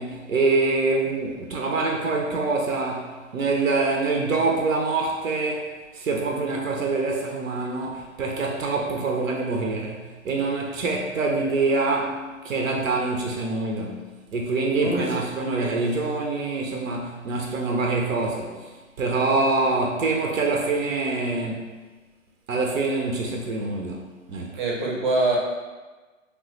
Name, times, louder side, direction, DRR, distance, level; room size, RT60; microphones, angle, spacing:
voice 1, 0.0-14.0 14.3-18.7 19.0-21.7 22.5-24.5, right 3 dB, 75° right, 0 dB, 0.6 m, -25 dB
voice 2, 24.6-25.4, right 2 dB, 35° right, -2 dB, 0.6 m, -24 dB
3.2 x 2.1 x 3.0 m, 1.3 s
figure-of-eight pair, 140°, 40 cm